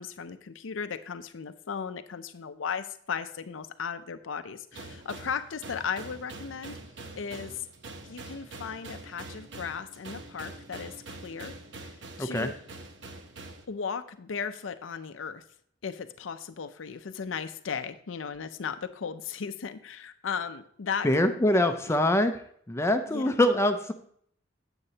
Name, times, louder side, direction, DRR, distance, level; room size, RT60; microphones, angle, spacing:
voice 1, 0.0-6.8 7.1-7.5 8.0-11.5 12.2-12.5 13.7-15.4 15.8-22.0 23.1-23.4, left 6 dB, 85° left, 10 dB, 0.5 m, -36 dB
sound 1, 4.7-13.6, right 2 dB, 65° right, 1.0 m, -44 dB
voice 2, 12.2-12.5 21.0-22.4 22.7-23.9, left 1 dB, 15° left, 7 dB, 0.5 m, -24 dB
9.8 x 8.0 x 2.8 m, 0.64 s
head